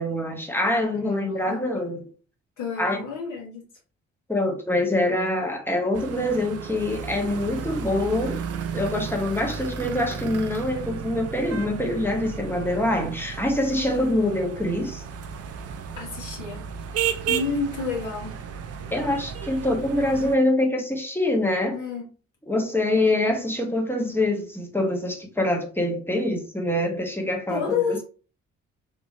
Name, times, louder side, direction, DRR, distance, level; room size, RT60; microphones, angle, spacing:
voice 1, 0.0-2.1 2.8-3.0 4.3-8.4 8.7-15.0 18.9-21.8 22.5-28.0, left 1 dB, 5° left, 1.2 m, -25 dB
voice 2, 1.0-1.7 2.6-3.6 16.0-16.6 16.9-18.4 21.7-22.1 27.5-28.0, left 5 dB, 55° left, 2.0 m, -30 dB
sound 1, 5.9-20.4, right 7 dB, 40° right, 0.6 m, -33 dB
3.4 x 2.9 x 3.1 m
figure-of-eight pair, 40°, 36 cm